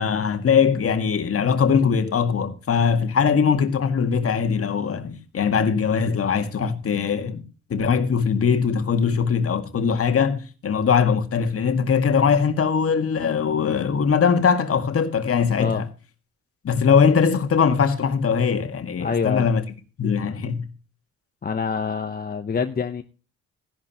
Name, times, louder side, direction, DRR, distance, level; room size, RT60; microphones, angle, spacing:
voice 1, 0.0-7.4 7.7-15.9 16.6-19.6 20.0-20.6, left 6 dB, 50° left, 2.0 m, -21 dB
voice 2, 19.0-19.5 21.4-23.0, left 5 dB, 30° left, 0.9 m, -26 dB
16.0 x 11.0 x 2.9 m
cardioid pair, 90°, 30 cm